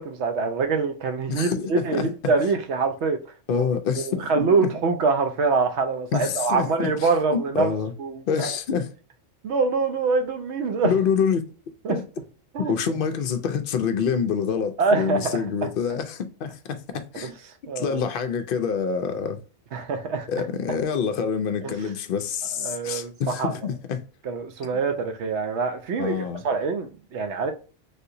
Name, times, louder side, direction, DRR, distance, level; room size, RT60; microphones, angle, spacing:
voice 1, 0.0-3.2 3.5-3.7 4.0-7.7 8.0-8.5 9.4-10.9 11.8-12.0 12.5-12.7 14.8-15.4 17.2-17.3 17.7-18.0 19.7-20.3 21.6-21.7 22.6-23.5 24.3-26.1 26.4-27.5, right 4 dB, 70° right, 0.8 m, -24 dB
voice 2, 1.3-2.1 3.5-4.7 6.1-7.9 8.3-8.9 10.8-11.5 11.9-12.1 12.6-17.3 17.8-19.4 20.3-24.0 26.0-26.4, left 6 dB, 60° left, 0.6 m, -26 dB
3.4 x 2.8 x 2.6 m
omnidirectional pair, 1.3 m